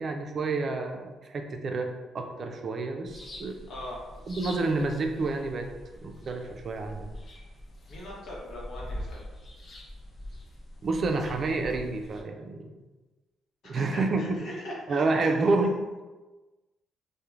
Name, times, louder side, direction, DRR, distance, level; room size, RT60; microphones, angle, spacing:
voice 1, 0.0-1.9 2.1-3.6 4.3-5.7 6.0-7.1 10.8-12.6 13.7-14.4 14.9-15.7, right 3 dB, 50° right, 4 dB, 0.3 m, -29 dB
sound 1, 3.1-12.2, left 1 dB, 45° left, 0.5 m, -44 dB
voice 2, 3.7-4.0 7.9-9.2 13.6-15.3, left 1 dB, 70° left, -4 dB, 0.8 m, -40 dB
2.9 x 2.0 x 2.4 m, 1.2 s
cardioid pair, 90°, 0 cm